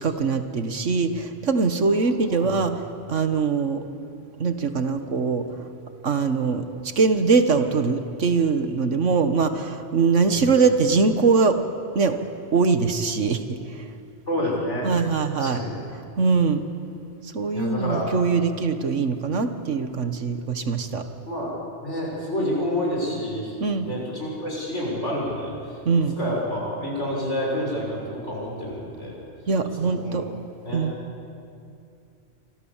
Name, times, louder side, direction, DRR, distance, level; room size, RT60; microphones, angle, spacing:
voice 1, 0.0-2.8 3.1-3.8 4.4-5.4 6.0-6.6 6.9-11.6 11.9-12.2 12.5-13.6 14.8-15.6 16.2-16.6 17.3-21.0 23.6-23.9 25.8-26.2 29.5-30.2 30.7-30.9, right 4 dB, 80° right, 8 dB, 1.8 m, -22 dB
voice 2, 14.3-14.9 15.3-15.8 17.5-18.1 20.6-20.7 21.3-21.5 21.8-23.5 23.8-29.2 29.8-30.2 30.6-30.9, left 1 dB, 70° left, -2 dB, 7.1 m, -29 dB
27.5 x 25.0 x 7.4 m, 2.6 s
omnidirectional pair, 1.2 m